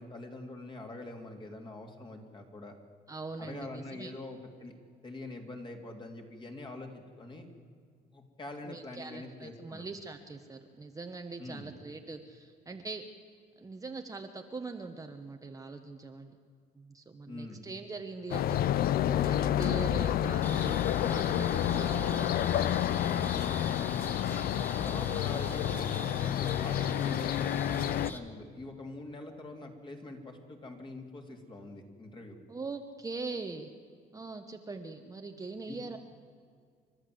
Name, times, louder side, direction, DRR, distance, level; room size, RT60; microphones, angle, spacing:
voice 1, 0.0-2.7 3.4-4.7 5.0-6.9 7.2-7.4 8.1-9.9 11.4-11.7 17.3-17.7 24.8-32.4 35.7-35.8, left 2 dB, 30° left, 3 dB, 3.0 m, -44 dB
voice 2, 3.1-4.1 8.6-13.0 13.6-16.4 16.7-23.0 32.5-33.7 34.1-36.0, right 3 dB, 20° right, 5 dB, 1.1 m, -42 dB
sound 1, 18.3-28.1, left 11 dB, 60° left, 0.6 m, -29 dB
sound 2, 20.4-28.2, left 1 dB, 10° left, 1.7 m, -42 dB
29.5 x 12.5 x 7.8 m, 2.1 s
cardioid pair, 110°, 17 cm